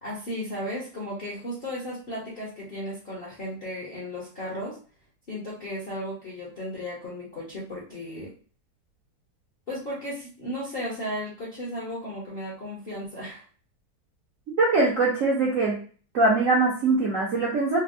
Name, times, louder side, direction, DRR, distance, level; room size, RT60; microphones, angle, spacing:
voice 1, 0.0-4.8 5.3-8.3 9.7-13.4, equal, 45° left, -6 dB, 0.7 m, -35 dB
voice 2, 14.6-15.8 16.1-17.8, right 3 dB, 65° right, -4 dB, 0.8 m, -22 dB
4.3 x 2.0 x 2.5 m, 0.41 s
omnidirectional pair, 2.1 m